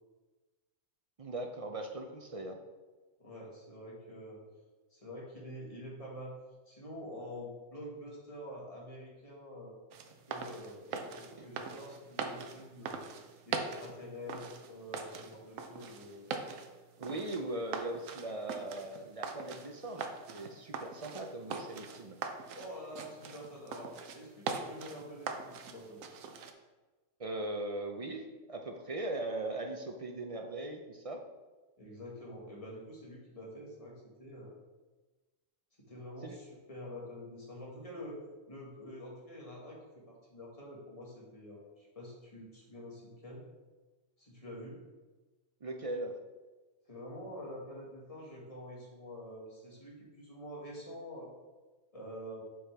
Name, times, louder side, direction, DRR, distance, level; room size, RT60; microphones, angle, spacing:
voice 1, 1.2-2.6 11.4-11.5 17.0-22.2 27.2-31.2 36.2-36.4 45.6-46.2, right 2 dB, 50° right, 3 dB, 0.4 m, -39 dB
voice 2, 3.2-4.4 4.9-6.4 6.7-9.7 10.3-13.0 13.4-16.3 22.5-26.0 31.8-34.5 35.8-39.8 40.1-43.4 44.2-44.8 46.9-51.3 51.9-52.4, equal, 25° left, -4 dB, 1.8 m, -47 dB
sound 1, 9.9-26.5, right 5 dB, 80° right, 1.1 m, -42 dB
7.8 x 5.7 x 3.4 m, 1.2 s
omnidirectional pair, 1.4 m